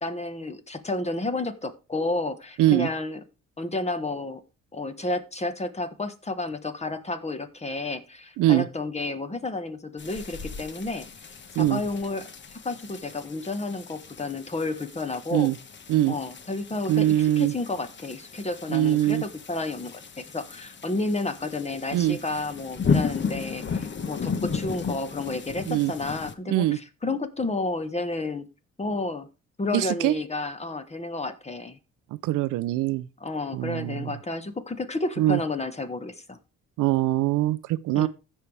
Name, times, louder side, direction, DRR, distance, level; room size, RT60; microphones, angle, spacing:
voice 1, 0.0-3.2 3.6-4.4 4.7-11.1 11.6-12.3 12.6-15.5 16.1-28.5 28.8-29.3 29.6-31.8 33.2-36.4 37.9-38.1, left 2 dB, 20° left, 1.4 m, -31 dB
voice 2, 2.6-2.9 8.4-8.7 11.6-11.8 15.3-15.6 15.9-16.1 16.9-17.5 18.7-19.2 21.9-22.2 25.7-25.9 26.5-26.8 29.7-30.2 32.2-33.1 33.5-34.1 35.2-35.4 36.8-38.1, right 14 dB, 85° right, 0.6 m, -22 dB
sound 1, 10.0-26.3, left 5 dB, 40° left, 1.2 m, -34 dB
15.0 x 5.6 x 3.4 m
cardioid pair, 90°, 30 cm